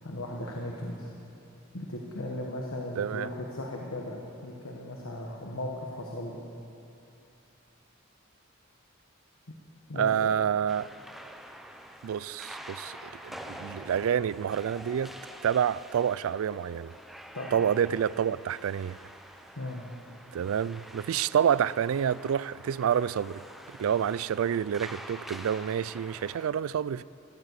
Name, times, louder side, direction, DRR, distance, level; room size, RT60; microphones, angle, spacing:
voice 1, 0.0-1.1 1.7-6.4 9.9-10.1 17.3-17.5 19.6-19.8, left 1 dB, 80° left, 1.3 m, -37 dB
voice 2, 3.0-3.3 10.0-10.9 12.0-15.2 15.4-16.9 17.5-19.0 20.3-23.4 23.8-27.0, right 8 dB, 85° right, 0.3 m, -28 dB
sound 1, 10.7-26.5, equal, ahead, 0.6 m, -46 dB
14.0 x 11.0 x 8.1 m
head